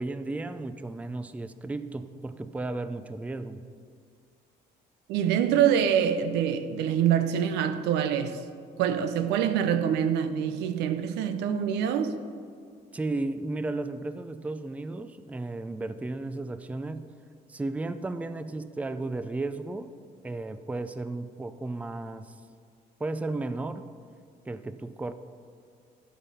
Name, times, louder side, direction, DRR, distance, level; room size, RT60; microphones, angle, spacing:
voice 1, 0.0-3.6 12.9-17.1 17.5-19.9 20.2-22.3 23.0-23.9 24.5-25.1, right 2 dB, 10° right, 0.4 m, -34 dB
voice 2, 5.1-8.4 8.8-12.2, right 9 dB, 90° right, 0.6 m, -25 dB
13.5 x 5.3 x 5.7 m
cardioid pair, 110°, 17 cm